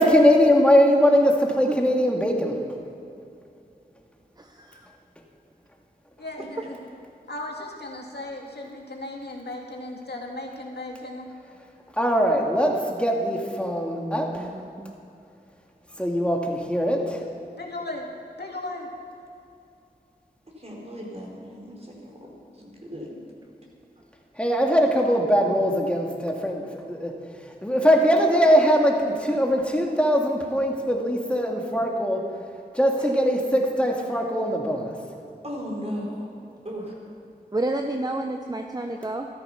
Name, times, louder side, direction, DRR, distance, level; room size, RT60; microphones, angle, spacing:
voice 1, 0.0-2.6 12.0-14.5 16.0-17.2 24.4-27.1 27.6-32.2 32.7-34.9, equal, 5° left, 0 dB, 2.1 m, -21 dB
voice 2, 6.2-6.8 7.3-11.3 17.6-18.1 18.4-18.9, left 2 dB, 75° left, -1 dB, 2.1 m, -36 dB
voice 3, 14.0-14.9 22.9-23.1 33.0-33.4 36.5-36.6 37.5-39.3, right 2 dB, 25° right, 4 dB, 0.8 m, -30 dB
voice 4, 20.6-22.3 22.5-23.2 35.4-36.3 36.6-36.9, equal, 40° right, -3 dB, 4.2 m, -36 dB
13.5 x 13.5 x 5.8 m, 2.6 s
wide cardioid pair, 45°, 17 cm